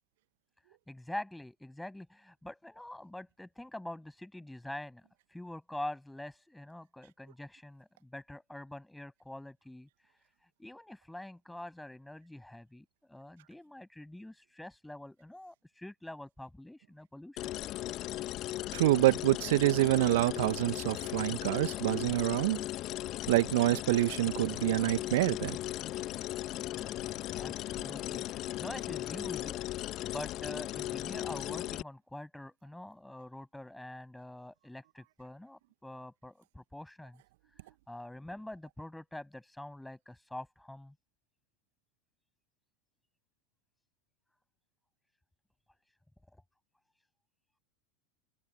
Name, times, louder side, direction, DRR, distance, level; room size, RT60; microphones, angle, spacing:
voice 1, 0.9-17.5 26.6-29.6 30.1-37.2 37.9-40.9, left 1 dB, 5° left, 7.4 m, -45 dB
sound 1, 17.4-31.8, left 15 dB, 40° left, 1.4 m, -37 dB
voice 2, 18.7-22.6 23.3-25.6, right 18 dB, 60° right, 1.4 m, -27 dB
figure-of-eight pair, 85°, 0 cm